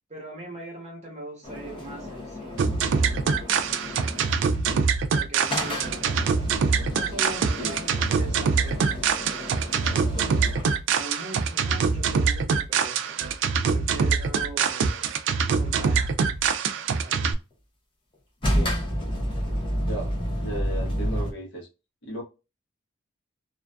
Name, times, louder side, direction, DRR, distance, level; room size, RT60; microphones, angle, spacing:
voice 1, 0.1-2.8 3.8-4.2 5.1-6.5 6.8-10.4 10.9-13.2 13.7-15.1 15.6-16.4 17.0-17.4, right 1 dB, 35° right, 0.9 m, -41 dB
sound 1, 1.4-4.6 5.5-10.8 18.4-21.3, equal, 25° left, 0.5 m, -31 dB
sound 2, 2.6-17.3, right 5 dB, 75° right, 0.3 m, -24 dB
voice 2, 18.4-18.8 19.9-21.7 22.0-22.2, right 1 dB, 65° left, 0.9 m, -35 dB
2.4 x 2.3 x 2.2 m
head